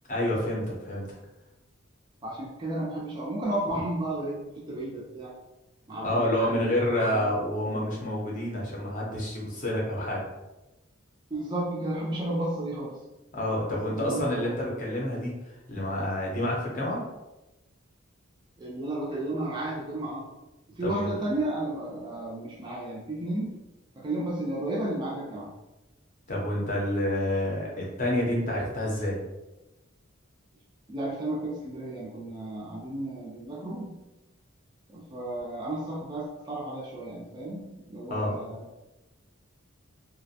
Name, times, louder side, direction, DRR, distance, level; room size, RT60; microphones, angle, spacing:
voice 1, 0.1-1.1 6.0-10.2 13.3-15.3 15.7-17.0 20.8-21.2 26.3-29.2 38.1-38.4, left 1 dB, 35° left, -3 dB, 0.6 m, -28 dB
voice 2, 2.2-5.3 5.9-7.3 11.3-13.0 13.7-14.5 18.6-20.3 20.7-23.5 24.0-25.5 30.9-33.9 34.9-38.6, right 1 dB, 20° right, -3 dB, 0.3 m, -33 dB
2.4 x 2.1 x 2.6 m, 1.0 s
head